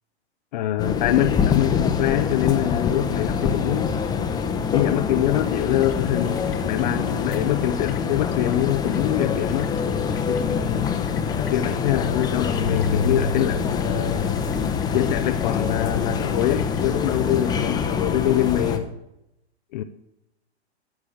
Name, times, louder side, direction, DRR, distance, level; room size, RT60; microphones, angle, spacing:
voice 1, 0.5-4.0 4.7-9.7 10.3-10.9 11.4-14.4 14.9-18.9 19.7-19.8, left 13 dB, 40° left, 0.7 m, -24 dB
sound 1, 0.8-18.8, left 6 dB, 10° left, 0.9 m, -25 dB
sound 2, 5.6-17.8, left 8 dB, 60° left, 1.3 m, -38 dB
13.5 x 4.9 x 8.3 m
figure-of-eight pair, 110°, 34 cm